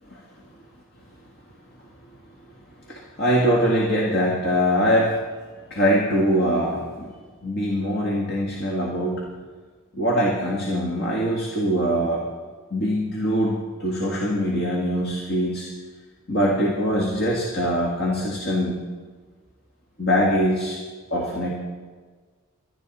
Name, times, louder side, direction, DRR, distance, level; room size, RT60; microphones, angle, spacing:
voice 1, 2.9-5.2 5.7-7.1 7.4-9.3 9.9-12.3 12.7-15.7 16.3-18.8 20.0-20.8 21.1-21.5, equal, 50° left, -2 dB, 1.9 m, -23 dB
24.0 x 11.5 x 4.1 m, 1.5 s
head